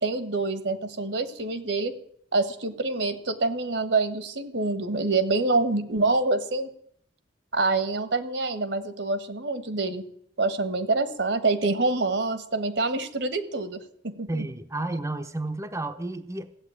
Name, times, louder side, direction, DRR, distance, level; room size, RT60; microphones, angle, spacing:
voice 1, 0.0-1.9 2.3-6.7 7.5-10.0 10.4-13.8 14.0-14.4, right 3 dB, 70° right, 1.4 m, -26 dB
voice 2, 14.3-16.5, right 2 dB, 15° right, 0.8 m, -31 dB
15.0 x 8.2 x 9.7 m
head